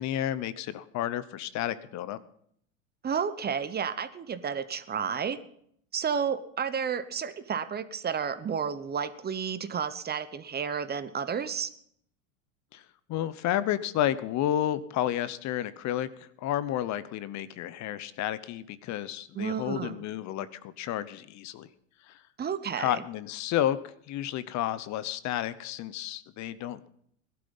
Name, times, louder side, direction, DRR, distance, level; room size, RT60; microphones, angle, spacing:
voice 1, 0.0-2.2 12.7-12.8 13.1-21.7 22.1-22.2 22.8-23.8 24.1-26.9, left 12 dB, 45° left, 15 dB, 0.9 m, -31 dB
voice 2, 3.0-5.4 5.9-11.7 19.3-20.0 22.4-23.0, right 7 dB, 25° right, 13 dB, 1.0 m, -31 dB
17.5 x 12.0 x 5.5 m, 0.68 s
hypercardioid pair, 100°, 40 cm